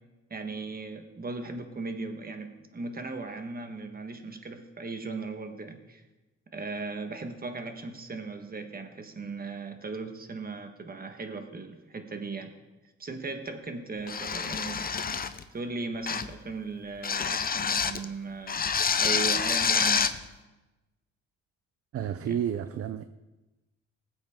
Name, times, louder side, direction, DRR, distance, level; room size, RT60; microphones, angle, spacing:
voice 1, 0.3-6.0 6.5-12.5 13.0-14.9 15.5-18.7 18.9-20.1 22.2-22.4, right 3 dB, 30° right, 6 dB, 1.5 m, -37 dB
sound 1, 14.1-15.4 16.1-16.4 17.0-18.0 18.5-20.2, left 6 dB, 30° left, 0.7 m, -27 dB
voice 2, 21.9-23.0, right 9 dB, 50° right, 11 dB, 0.6 m, -31 dB
19.0 x 7.9 x 3.7 m, 1.1 s
cardioid pair, 90°, 30 cm